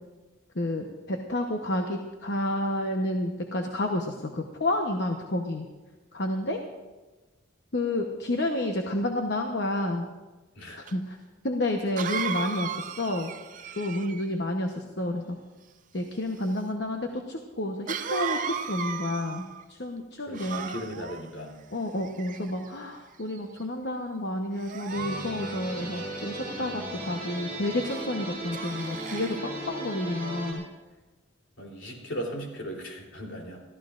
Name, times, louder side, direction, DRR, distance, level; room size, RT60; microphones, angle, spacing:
voice 1, 0.6-5.7 6.1-6.6 7.7-10.1 10.8-11.2 11.4-13.3 13.8-15.4 15.9-20.7 21.7-30.6, left 1 dB, 60° left, 2 dB, 1.0 m, -30 dB
Cough, 10.9-11.0 12.0-14.3 17.9-19.6 20.3-21.2 22.0-22.7 23.3-23.6 24.6-26.2 27.8-28.1 28.5-29.4, right 6 dB, 40° right, 0.5 m, -35 dB
voice 2, 20.2-21.6 31.6-33.6, equal, 75° left, -1 dB, 3.3 m, -37 dB
sound 1, 24.9-30.5, right 2 dB, 10° right, 4.9 m, -36 dB
26.5 x 14.5 x 2.5 m, 1.2 s
head